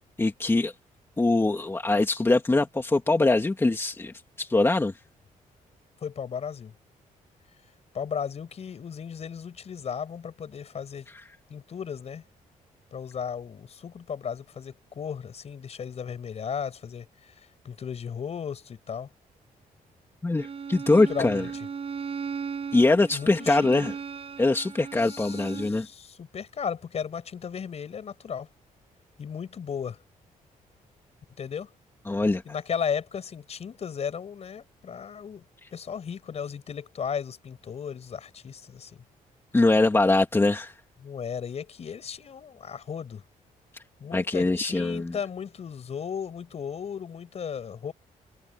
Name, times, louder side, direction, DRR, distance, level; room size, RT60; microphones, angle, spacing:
voice 1, 0.2-0.7 1.2-4.9 20.2-21.4 22.7-23.9 24.4-25.9 32.1-32.4 39.5-40.7 44.1-45.1, left 2 dB, 15° left, 2.2 m, -23 dB
voice 2, 6.0-6.7 7.9-11.1 11.5-12.2 12.9-17.3 17.6-19.1 20.9-21.7 23.1-23.9 25.0-28.5 29.2-30.0 31.4-31.7 32.5-35.4 35.7-39.0 41.0-43.2 44.0-47.9, left 7 dB, 50° left, 5.3 m, -35 dB
Bowed string instrument, 20.4-25.8, right 6 dB, 40° right, 7.5 m, -36 dB
cardioid pair, 125°, 14 cm